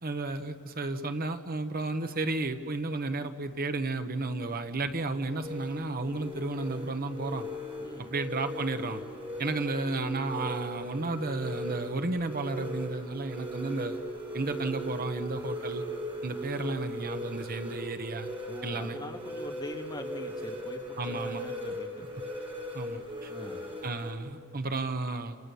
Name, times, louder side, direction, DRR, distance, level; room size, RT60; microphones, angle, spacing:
voice 1, 0.0-7.5 8.1-9.0 9.4-14.0 14.3-15.8 16.2-18.3 18.6-19.0 21.0-21.4 22.7-23.3 23.8-25.4, right 2 dB, 45° right, 8 dB, 1.2 m, -33 dB
sound 1, 4.4-24.1, equal, 25° right, 4.1 m, -38 dB
voice 2, 18.5-22.0 23.3-23.6, left 1 dB, 20° left, 2 dB, 2.0 m, -43 dB
29.5 x 28.5 x 7.0 m, 2.1 s
head